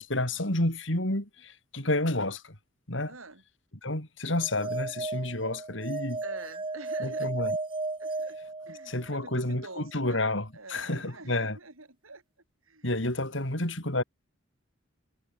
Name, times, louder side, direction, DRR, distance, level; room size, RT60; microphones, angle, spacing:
voice 1, 0.0-2.5 2.9-3.1 3.8-6.2 7.0-7.6 8.9-11.6 12.8-14.0, left 1 dB, 65° left, 4.9 m, -30 dB
voice 2, 3.1-3.4 6.2-7.3 8.0-8.4 8.7-10.2 10.5-12.2 12.7-13.4, right 3 dB, 90° right, 6.5 m, -45 dB
sound 1, 4.4-9.2, right 3 dB, 25° right, 0.9 m, -35 dB
head